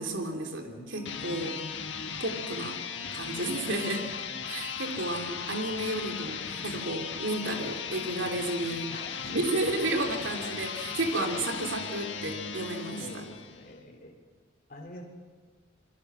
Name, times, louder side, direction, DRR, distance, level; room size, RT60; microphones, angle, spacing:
voice 1, 0.0-0.7 0.9-1.5 2.2-2.8 3.1-4.0 4.5-8.9 9.3-13.2, right 2 dB, 75° right, 3 dB, 3.1 m, -32 dB
voice 2, 0.6-1.6 3.4-3.8 8.9-9.4 10.1-10.2 11.1-11.9 12.5-14.2 14.7-15.1, left 2 dB, 50° left, 0 dB, 3.7 m, -46 dB
sound 1, 1.0-13.7, left 6 dB, 65° left, 1.7 m, -37 dB
27.5 x 22.0 x 6.2 m, 1.5 s
head